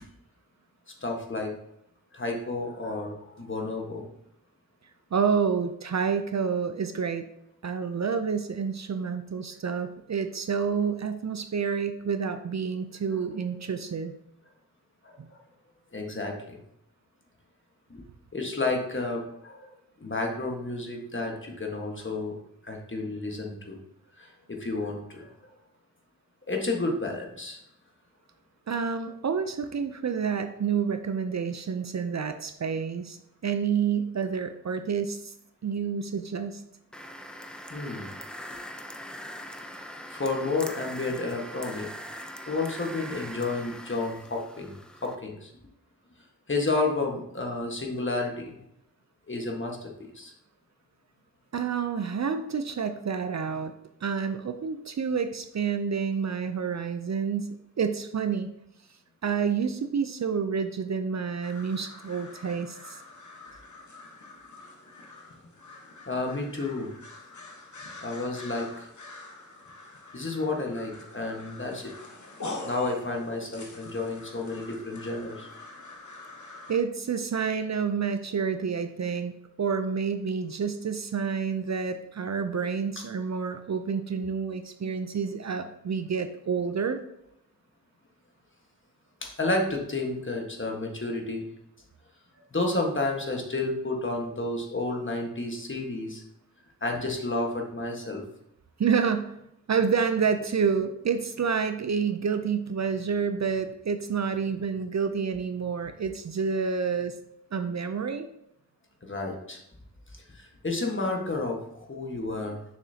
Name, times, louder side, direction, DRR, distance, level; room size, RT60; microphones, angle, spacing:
voice 1, 1.0-1.5 2.1-4.1 13.4-13.6 15.0-15.4 15.9-16.6 17.9-18.0 18.3-22.3 22.6-23.8 24.2-25.5 26.5-27.6 37.7-38.1 40.1-41.9 42.5-44.8 45.0-45.5 46.5-48.6 49.3-50.3 66.1-66.9 68.0-68.9 70.1-71.9 72.6-75.5 89.2-91.5 92.5-96.2 96.8-98.2 109.0-109.6 110.1-112.6, left 2 dB, 35° left, 1 dB, 1.5 m, -31 dB
voice 2, 5.1-7.3 7.6-14.1 15.2-15.3 28.7-33.2 33.4-35.3 35.6-36.6 51.5-53.7 54.0-58.5 59.2-63.0 76.7-79.3 79.6-87.0 98.8-99.3 99.7-107.2 107.5-108.3, right 6 dB, 50° right, 8 dB, 0.5 m, -28 dB
sound 1, 36.9-45.2, equal, ahead, 0.6 m, -41 dB
sound 2, 61.4-76.8, left 2 dB, 55° left, 1.2 m, -45 dB
6.9 x 6.2 x 2.8 m, 0.78 s
wide cardioid pair, 70°, 35 cm